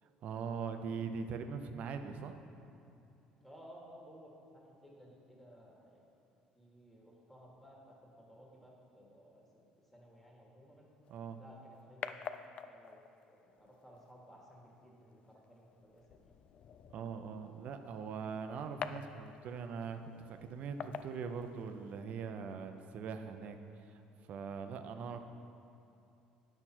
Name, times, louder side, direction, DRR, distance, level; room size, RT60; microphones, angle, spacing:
voice 1, 0.0-2.3 11.1-11.4 16.9-25.2, right 5 dB, 60° right, 7 dB, 0.6 m, -42 dB
voice 2, 3.4-6.0 6.5-8.0 8.3-9.4 9.9-10.9 11.4-12.4 12.7-13.0 13.3-16.3, equal, 10° left, -3 dB, 1.7 m, -57 dB
sound 1, 11.0-22.0, left 7 dB, 50° left, 0.3 m, -49 dB
8.9 x 5.8 x 4.4 m, 2.8 s
supercardioid pair, 95°, 3 cm